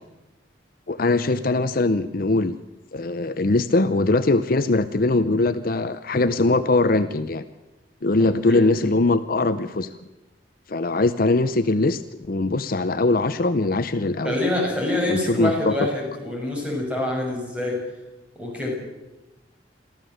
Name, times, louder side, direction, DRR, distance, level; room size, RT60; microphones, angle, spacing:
voice 1, 0.9-2.6 2.9-7.4 8.0-9.9 10.7-12.0 12.3-14.4 15.1-15.7, left 2 dB, 50° left, 12 dB, 0.7 m, -21 dB
voice 2, 8.2-8.7 14.2-17.8 18.3-18.7, left 1 dB, 5° right, -1 dB, 6.6 m, -26 dB
22.5 x 15.0 x 7.9 m, 1.0 s
head